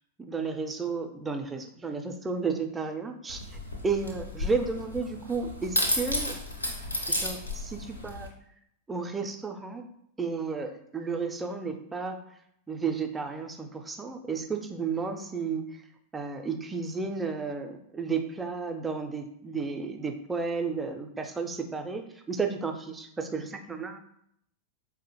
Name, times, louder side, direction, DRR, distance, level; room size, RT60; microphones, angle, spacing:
voice 1, 0.2-3.4 3.8-6.3 7.1-8.3 8.9-9.8 10.2-12.2 12.7-15.6 16.1-24.0, right 4 dB, 15° right, 5 dB, 0.4 m, -32 dB
sound 1, 3.3-8.3, left 1 dB, 85° left, 0.6 m, -32 dB
4.7 x 2.1 x 2.9 m, 0.72 s
figure-of-eight pair, 90°, 0 cm